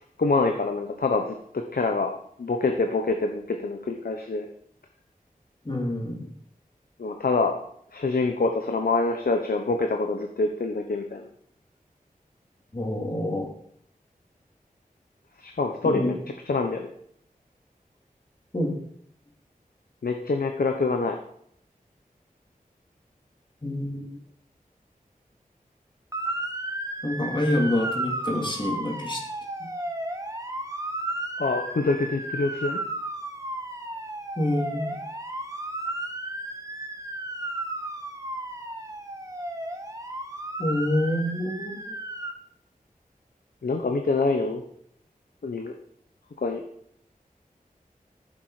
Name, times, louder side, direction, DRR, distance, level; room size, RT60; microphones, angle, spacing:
voice 1, 0.2-4.5 7.0-7.5 7.9-11.3 15.4-16.1 16.5-16.9 20.0-21.2 31.4-32.8 43.6-44.6 45.4-45.7 46.4-46.6, left 3 dB, 85° left, 4 dB, 1.1 m, -26 dB
voice 2, 5.6-6.3 12.7-13.5 15.8-16.2 18.5-18.7 23.6-24.1 27.0-29.2 29.6-29.7 34.4-35.0 40.6-41.9, left 1 dB, 35° left, -1 dB, 3.2 m, -27 dB
Motor vehicle (road) / Siren, 26.1-42.3, right 1 dB, 20° right, 1.6 m, -34 dB
14.0 x 7.6 x 5.0 m, 0.68 s
wide cardioid pair, 75°, 15 cm